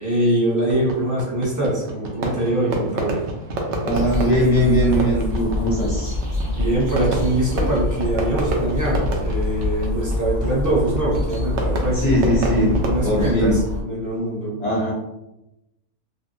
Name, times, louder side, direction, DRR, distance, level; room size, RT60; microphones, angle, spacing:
voice 1, 0.0-3.2 6.5-14.6, right 1 dB, 20° right, -6 dB, 0.5 m, -23 dB
Fireworks, 0.7-13.0, right 2 dB, 65° right, 0.7 m, -29 dB
voice 2, 3.8-6.1 12.0-12.8 13.0-13.6 14.6-14.9, equal, 40° left, -5 dB, 0.6 m, -20 dB
sound 1, 3.9-13.8, left 2 dB, 45° right, 1.0 m, -26 dB
2.8 x 2.5 x 2.5 m, 0.92 s
omnidirectional pair, 1.6 m